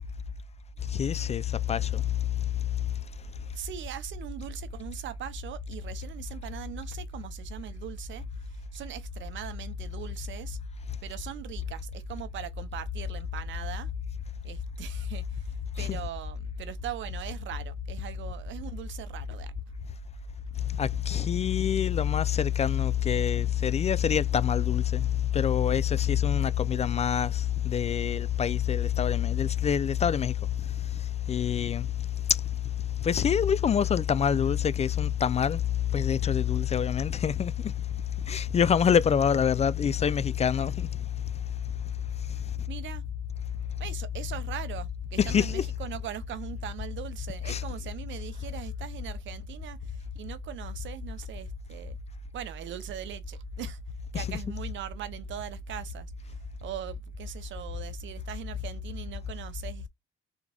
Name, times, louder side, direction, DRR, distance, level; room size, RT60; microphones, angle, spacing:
voice 1, 0.9-2.0 15.8-16.0 20.8-25.1 25.3-30.3 31.3-31.9 33.0-35.6 35.9-37.5 38.3-40.9 45.2-45.7 47.4-47.6 54.1-54.4, left 8 dB, 35° left, 0.4 m, -25 dB
voice 2, 3.5-10.6 11.0-13.9 14.4-19.6 42.7-43.1 43.8-52.0 52.3-53.8 54.1-59.9, right 8 dB, 70° right, 0.7 m, -39 dB
3.6 x 3.5 x 3.4 m
cardioid pair, 90°, 20 cm